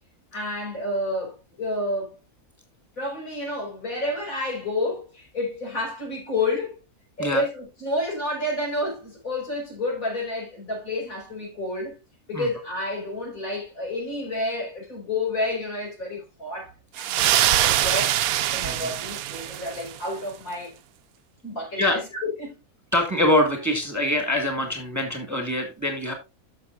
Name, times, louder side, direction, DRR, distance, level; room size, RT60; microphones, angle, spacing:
voice 1, 0.3-2.2 3.0-6.8 7.2-12.0 12.3-18.2 18.5-20.7 21.4-22.6, left 2 dB, 65° left, 5.4 m, -30 dB
sound 1, 17.0-20.0, right 12 dB, 75° right, 1.0 m, -23 dB
voice 2, 22.9-26.1, left 1 dB, 10° right, 1.8 m, -24 dB
13.0 x 6.5 x 2.5 m
omnidirectional pair, 1.6 m